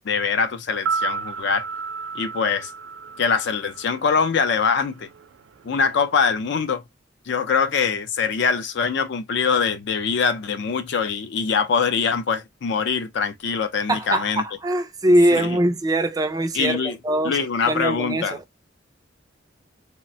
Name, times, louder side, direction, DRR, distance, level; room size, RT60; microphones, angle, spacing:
voice 1, 0.0-1.7 2.1-2.7 3.2-5.1 5.6-6.8 7.3-14.4 15.3-15.6 16.5-17.0 17.2-18.4, left 5 dB, 65° left, 0.4 m, -23 dB
sound 1, 0.7-4.9 5.1-5.2, right 5 dB, 90° right, 0.4 m, -32 dB
voice 2, 13.9-17.4 17.7-18.4, right 1 dB, 20° right, 0.3 m, -22 dB
3.2 x 2.1 x 2.6 m
head